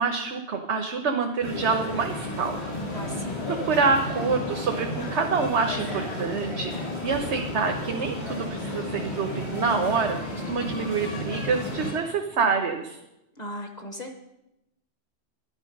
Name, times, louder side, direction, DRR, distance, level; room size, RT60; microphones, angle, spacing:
voice 1, 0.0-2.6 3.5-13.0, right 5 dB, 85° right, 4 dB, 1.3 m, -27 dB
sound 1, 1.4-11.9, left 1 dB, 75° left, 5.1 m, -33 dB
voice 2, 2.9-3.5 13.4-14.2, equal, 40° left, 4 dB, 1.2 m, -37 dB
10.5 x 10.5 x 5.3 m, 0.89 s
omnidirectional pair, 1.1 m